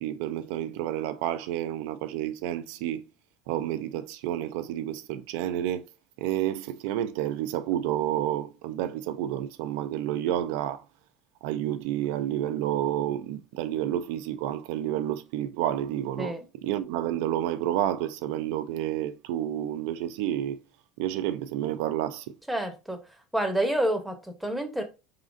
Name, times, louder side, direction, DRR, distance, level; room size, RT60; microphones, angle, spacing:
voice 1, 0.0-3.0 3.5-5.9 6.2-10.8 11.4-16.3 16.6-20.6 21.0-22.3, right 12 dB, 85° right, 0.4 m, -30 dB
voice 2, 22.5-23.0 23.3-24.8, right 1 dB, ahead, 0.8 m, -28 dB
4.1 x 3.8 x 2.5 m
cardioid pair, 140°, 0 cm